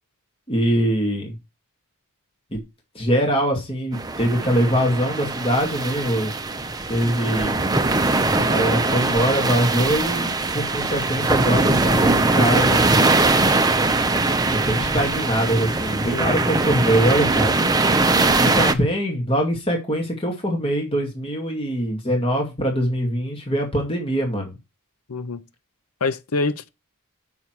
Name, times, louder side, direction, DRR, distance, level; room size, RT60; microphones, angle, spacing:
voice 1, 0.5-1.3 2.5-2.6 2.9-6.3 6.9-7.5 8.4-10.3 10.5-12.9 14.5-17.6 18.4-24.6, equal, 25° left, 2.2 m, -23 dB
sound 1, 3.9-18.7, right 3 dB, 15° right, 0.8 m, -21 dB
voice 2, 16.1-16.4 25.1-25.4 26.0-26.7, left 3 dB, 75° left, 0.7 m, -26 dB
7.1 x 6.1 x 4.6 m
head